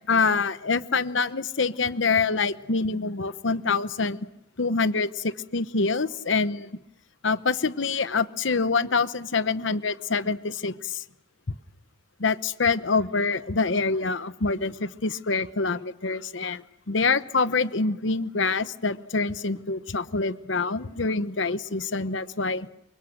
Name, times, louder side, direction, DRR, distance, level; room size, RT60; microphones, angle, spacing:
voice 1, 0.1-4.2 4.6-6.7 7.2-11.0 12.2-16.6 16.9-22.7, left 4 dB, 75° left, 13 dB, 1.0 m, -26 dB
28.0 x 24.0 x 6.6 m, 0.82 s
head